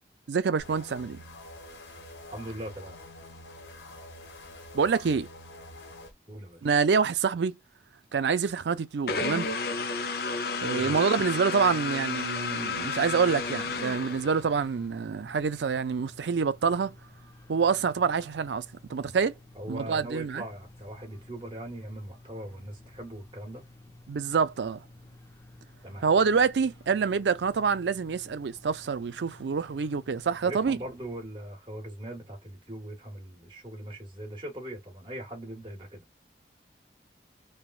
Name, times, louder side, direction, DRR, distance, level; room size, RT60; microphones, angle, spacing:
voice 1, 0.3-1.2 4.7-5.3 6.6-7.5 8.1-9.5 10.6-17.0 17.5-19.4 19.7-20.4 24.1-24.8 26.0-30.8, right 5 dB, 85° right, 0.4 m, -26 dB
sound 1, 0.6-6.1, left 1 dB, 85° left, 1.3 m, -47 dB
voice 2, 2.3-3.0 6.3-6.6 10.7-11.1 19.5-23.6 25.8-26.1 30.4-36.0, right 1 dB, 30° right, 1.3 m, -40 dB
sound 2, 9.1-14.7, left 4 dB, 60° left, 0.5 m, -32 dB
sound 3, 11.5-31.3, left 1 dB, 15° left, 0.6 m, -53 dB
3.4 x 2.3 x 2.3 m
head